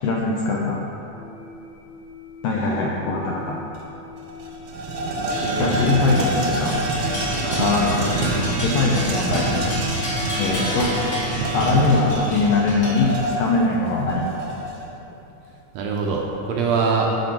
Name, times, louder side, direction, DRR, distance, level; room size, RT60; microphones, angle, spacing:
voice 1, 0.0-0.8 2.4-3.6 5.6-6.8 7.6-8.0 8.6-9.5 10.4-10.9 11.5-13.1 13.4-14.2, left 3 dB, 90° left, -2 dB, 1.4 m, -21 dB
sound 1, 1.1-12.1, left 1 dB, 55° left, 1.6 m, -41 dB
sound 2, 3.7-3.8 4.2-14.9, right 2 dB, 60° right, 1.7 m, -26 dB
sound 3, 5.3-13.5, equal, 35° left, 1.3 m, -32 dB
voice 2, 5.4-6.5 7.4-7.6 15.7-17.2, right 4 dB, 80° right, -1 dB, 1.6 m, -24 dB
9.8 x 5.2 x 4.5 m, 3.0 s
omnidirectional pair, 3.7 m